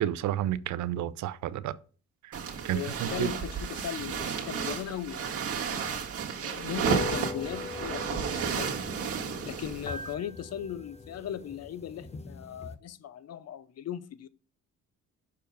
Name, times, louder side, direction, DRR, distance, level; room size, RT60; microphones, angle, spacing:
voice 1, 0.0-1.7 2.6-3.3, right 12 dB, 70° right, 0.6 m, -30 dB
sound 1, 2.3-10.1, right 7 dB, 50° right, 1.9 m, -33 dB
voice 2, 2.7-5.3 5.6-6.0 6.4-8.8 9.4-14.3, left 10 dB, 55° left, 0.7 m, -38 dB
sound 2, 6.7-12.7, left 3 dB, 20° left, 0.9 m, -39 dB
6.4 x 4.6 x 5.2 m
cardioid pair, 90°, 30 cm